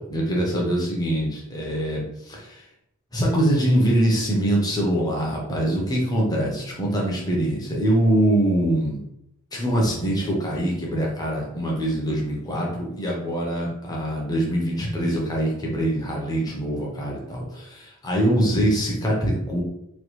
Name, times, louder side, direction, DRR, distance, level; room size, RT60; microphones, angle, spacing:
voice 1, 0.0-2.6 3.1-9.0 9.5-19.6, right 1 dB, 15° left, -3 dB, 0.7 m, -23 dB
3.0 x 2.3 x 3.0 m, 0.81 s
head